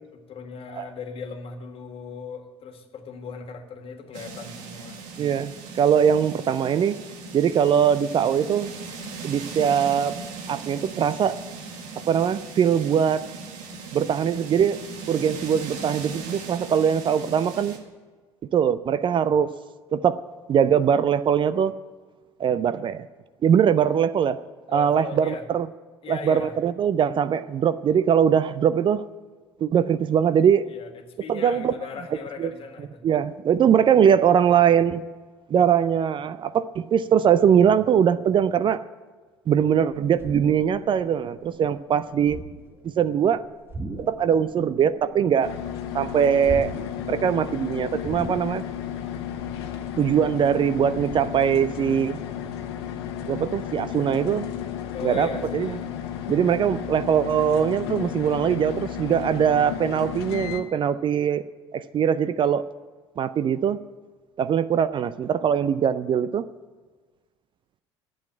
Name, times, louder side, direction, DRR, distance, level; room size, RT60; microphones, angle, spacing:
voice 1, 0.3-5.0 24.7-25.4 26.0-26.6 30.7-33.1 54.9-55.9, left 5 dB, 40° left, 5 dB, 1.8 m, -38 dB
sound 1, 4.1-17.8, right 4 dB, 60° right, 1.7 m, -38 dB
voice 2, 5.2-7.0 7.3-8.7 9.2-10.2 10.5-11.4 12.0-13.3 13.9-14.8 15.1-17.8 18.5-19.5 19.9-20.2 20.5-21.8 22.4-23.1 23.4-24.4 24.7-25.7 26.1-29.0 29.6-30.7 31.3-31.7 32.4-32.5 33.0-35.0 35.5-38.8 39.5-42.4 42.8-43.4 44.1-45.5 45.9-46.7 47.1-48.6 50.0-52.2 53.3-54.5 55.0-55.8 56.3-61.4 61.7-62.7 63.2-63.8 64.4-66.5, right 8 dB, 35° right, 15 dB, 0.5 m, -21 dB
sound 2, 39.6-41.0 41.3-41.7 42.2-42.8 43.6-44.3 44.6-45.6 45.9-47.1 47.5-47.6 48.0-48.8 49.2-51.2, right 2 dB, 15° right, 1.5 m, -38 dB
sound 3, 45.4-60.6, left 9 dB, 70° left, 1.2 m, -33 dB
11.5 x 7.9 x 9.0 m, 1.4 s
figure-of-eight pair, 65°, 14 cm